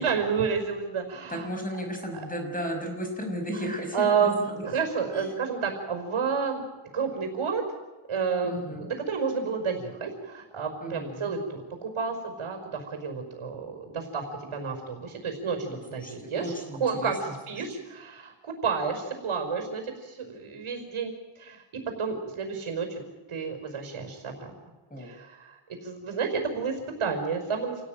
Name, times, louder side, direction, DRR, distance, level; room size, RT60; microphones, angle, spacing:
voice 1, 0.0-1.5 2.1-2.3 3.9-4.3 4.6-6.6 6.9-7.6 8.1-11.4 11.8-15.6 15.8-16.5 16.8-21.6 22.0-23.0 23.3-24.5 25.0-27.9, right 5 dB, 80° right, 4 dB, 5.2 m, -30 dB
voice 2, 1.3-4.7 5.1-5.3 8.4-8.8 10.8-11.3 15.6-17.3 24.9-25.2, equal, 15° left, 4 dB, 5.9 m, -35 dB
28.5 x 17.5 x 9.2 m, 1.2 s
wide cardioid pair, 155°, 49 cm